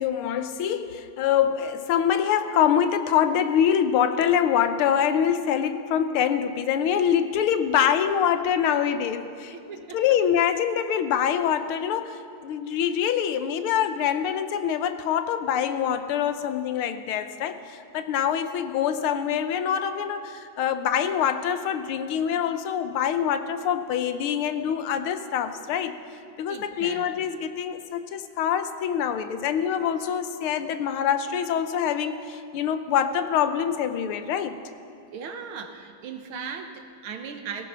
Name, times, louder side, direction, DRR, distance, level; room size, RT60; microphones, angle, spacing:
voice 1, 0.0-9.6 9.9-26.0 26.4-34.6, left 9 dB, 90° left, 10 dB, 1.7 m, -25 dB
voice 2, 9.5-10.0 26.5-27.3 35.1-37.7, right 6 dB, 80° right, 6 dB, 1.9 m, -38 dB
17.5 x 15.0 x 5.6 m, 2.7 s
omnidirectional pair, 2.3 m